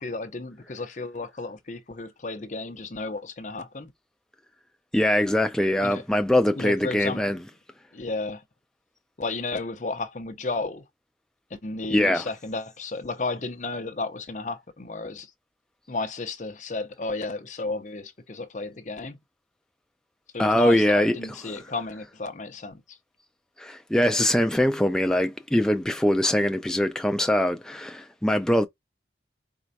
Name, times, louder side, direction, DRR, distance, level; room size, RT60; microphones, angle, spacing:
voice 1, 0.0-3.9 5.8-6.0 6.6-7.3 7.9-8.4 9.2-10.8 11.6-15.3 15.9-19.2 20.3-23.0, left 3 dB, 45° left, 0.7 m, -33 dB
voice 2, 4.9-7.4 11.9-12.3 20.4-21.1 23.6-28.7, left 1 dB, 5° left, 0.3 m, -22 dB
4.5 x 4.2 x 2.6 m
head